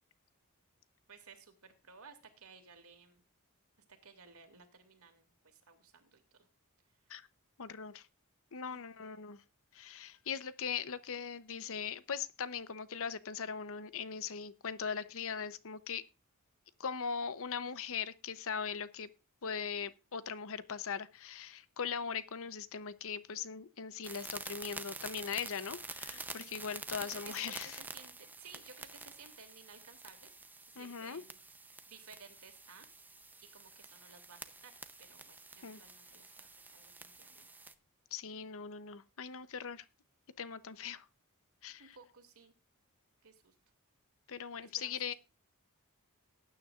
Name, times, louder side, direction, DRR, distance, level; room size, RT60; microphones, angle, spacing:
voice 1, 1.1-3.2 3.9-6.5 8.7-9.2 26.1-30.3 30.7-31.4 31.9-32.9 33.4-34.7 35.1-37.5 41.8-42.5 43.2-43.6 44.6-45.1, right 5 dB, 70° right, 2.5 m, -57 dB
voice 2, 7.6-8.1 8.5-9.4 9.7-16.0 16.8-19.1 19.4-27.8 30.8-31.2 35.6-35.8 38.1-39.8 40.4-41.1 41.6-42.0 44.3-45.1, left 6 dB, 65° left, 0.8 m, -40 dB
sound 1, 24.0-37.7, right 3 dB, 10° right, 0.7 m, -48 dB
19.0 x 9.5 x 2.5 m
head